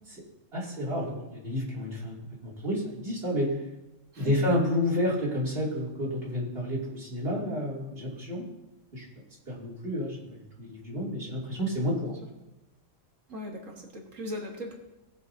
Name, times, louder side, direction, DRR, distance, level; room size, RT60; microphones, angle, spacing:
voice 1, 0.5-2.2 2.4-3.6 4.2-8.4 8.9-9.1 9.5-12.1, left 1 dB, 50° right, -5 dB, 3.0 m, -30 dB
voice 2, 4.1-4.5 12.0-12.2 13.3-14.8, left 1 dB, 85° right, 0 dB, 1.9 m, -39 dB
18.5 x 6.9 x 2.7 m, 1.0 s
omnidirectional pair, 1.3 m